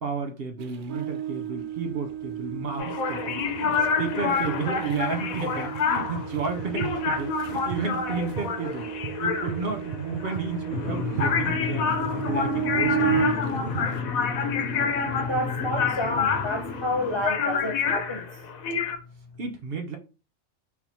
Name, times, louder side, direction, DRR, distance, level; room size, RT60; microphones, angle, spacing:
voice 1, 0.0-8.9 9.2-11.9 12.3-13.4 19.4-20.0, right 4 dB, 55° right, 0.8 m, -32 dB
sound 1, 0.6-14.0, right 8 dB, 90° right, 0.4 m, -32 dB
sound 2, 2.8-19.0, left 6 dB, 85° left, 1.2 m, -28 dB
sound 3, 10.7-17.3, left 4 dB, 65° left, 1.0 m, -32 dB
voice 2, 15.3-18.2, left 1 dB, 40° left, 0.4 m, -29 dB
4.1 x 2.9 x 4.0 m
omnidirectional pair, 1.4 m